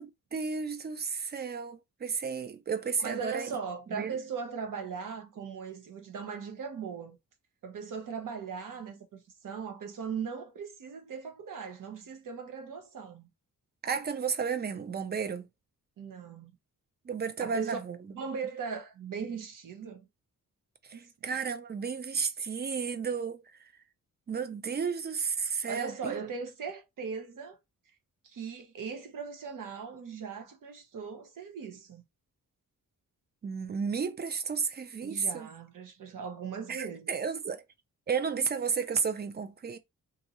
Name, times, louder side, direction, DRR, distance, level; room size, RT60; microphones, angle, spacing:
voice 1, 0.0-3.5 3.9-4.2 13.8-15.4 17.1-18.0 20.9-23.4 24.3-26.1 33.4-35.5 36.7-37.6 38.1-39.8, right 6 dB, 30° right, 0.4 m, -33 dB
voice 2, 3.0-7.2 7.6-13.3 16.0-16.5 17.4-17.8 18.1-20.0 20.9-21.1 25.7-27.6 28.2-32.0 35.0-37.1, right 6 dB, 75° right, 1.0 m, -39 dB
2.7 x 2.7 x 4.0 m
wide cardioid pair, 165°, 33 cm